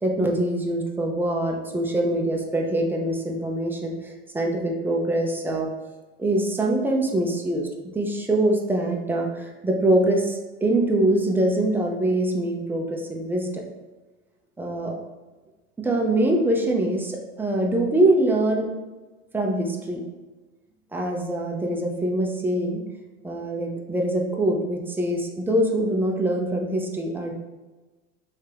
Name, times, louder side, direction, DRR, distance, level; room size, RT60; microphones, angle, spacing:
voice 1, 0.0-5.7 6.2-7.7 7.9-13.6 14.6-14.9 15.8-18.7 19.3-20.0 20.9-22.8 23.2-27.3, right 1 dB, 5° right, 0 dB, 0.5 m, -24 dB
3.4 x 2.7 x 3.3 m, 1.2 s
supercardioid pair, 110°, 31 cm